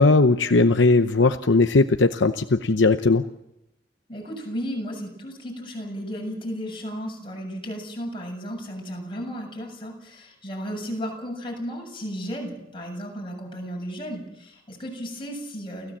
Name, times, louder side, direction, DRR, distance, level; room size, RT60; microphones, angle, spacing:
voice 1, 0.0-3.2, left 3 dB, 70° left, 8 dB, 0.8 m, -18 dB
voice 2, 4.1-16.0, equal, 25° left, -1 dB, 7.4 m, -34 dB
29.0 x 15.5 x 7.4 m, 0.88 s
head